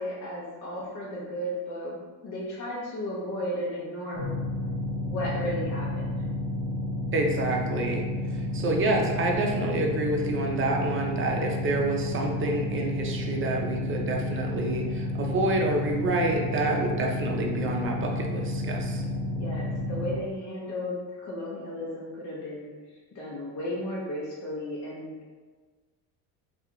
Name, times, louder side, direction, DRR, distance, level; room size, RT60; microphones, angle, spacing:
voice 1, 0.0-2.0 2.2-4.3 5.0-6.2 19.3-21.0 21.2-22.7 23.1-25.1, left 1 dB, 45° left, -6 dB, 0.8 m, -34 dB
sound 1, 4.1-20.1, left 1 dB, 85° left, 1.1 m, -31 dB
voice 2, 7.1-8.0 8.3-19.0, right 2 dB, 30° right, 0 dB, 0.5 m, -28 dB
2.4 x 2.3 x 2.9 m, 1.4 s
supercardioid pair, 80°, 41 cm